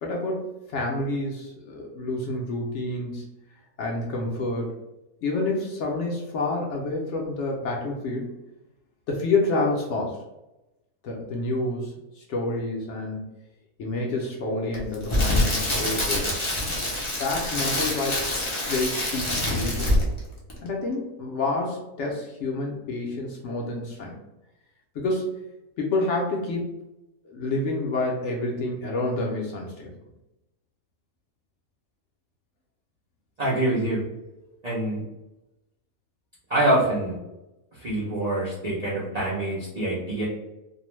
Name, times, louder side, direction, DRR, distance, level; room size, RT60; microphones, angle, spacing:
voice 1, 0.0-3.2 3.8-4.7 5.2-8.3 9.1-10.2 11.0-13.2 13.8-16.3 17.2-18.2 18.7-20.0 20.6-24.2 24.9-25.3 25.8-26.7 27.2-29.9, left 2 dB, 65° left, -1 dB, 0.8 m, -28 dB
Crackle, 14.7-20.2 20.5-20.7, left 1 dB, 40° left, 0.4 m, -25 dB
voice 2, 33.4-34.0 34.6-35.0 36.5-37.1 37.7-40.2, right 1 dB, 55° right, -7 dB, 0.4 m, -25 dB
2.5 x 2.1 x 3.0 m, 0.96 s
omnidirectional pair, 1.5 m